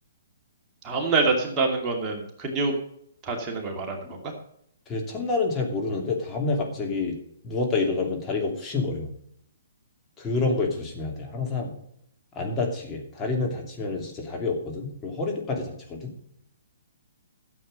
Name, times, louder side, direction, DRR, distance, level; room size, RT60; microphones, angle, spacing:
voice 1, 0.8-2.7 3.2-4.2, right 3 dB, 25° right, 1 dB, 2.5 m, -26 dB
voice 2, 4.9-7.2 7.4-9.1 10.2-11.7 12.4-16.1, left 3 dB, 20° left, 0 dB, 2.7 m, -28 dB
13.5 x 7.7 x 5.4 m, 0.70 s
figure-of-eight pair, 130°, 0 cm